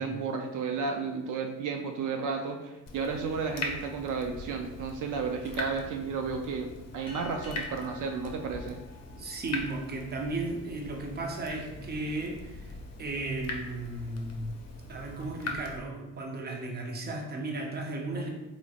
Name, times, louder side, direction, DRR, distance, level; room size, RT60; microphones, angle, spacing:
voice 1, 0.0-6.7 6.9-8.8, right 5 dB, 75° right, 4 dB, 0.5 m, -33 dB
Water tap faucet / Drip, 2.9-15.8, left 3 dB, 55° left, 0.6 m, -41 dB
sound 1, 7.1-10.0, left 2 dB, 20° left, 0.9 m, -49 dB
voice 2, 9.1-14.4 14.9-18.3, right 2 dB, 30° right, 1 dB, 0.6 m, -35 dB
3.9 x 3.1 x 2.3 m, 1.0 s
cardioid pair, 120°, 31 cm